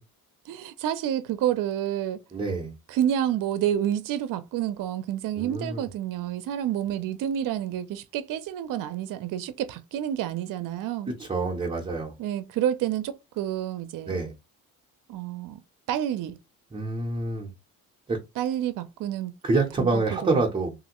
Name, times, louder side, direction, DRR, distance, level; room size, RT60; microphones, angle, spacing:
voice 1, 0.5-2.2 2.9-11.1 12.2-14.2 15.1-15.6 15.9-16.4 18.4-19.3 19.8-20.4, right 10 dB, 65° right, 0.5 m, -29 dB
voice 2, 2.3-2.7 5.4-5.9 11.1-12.1 14.1-14.3 16.7-17.5 18.1-18.2 19.4-20.7, right 3 dB, 15° right, 0.6 m, -27 dB
3.1 x 2.5 x 2.9 m
cardioid pair, 150°, 35 cm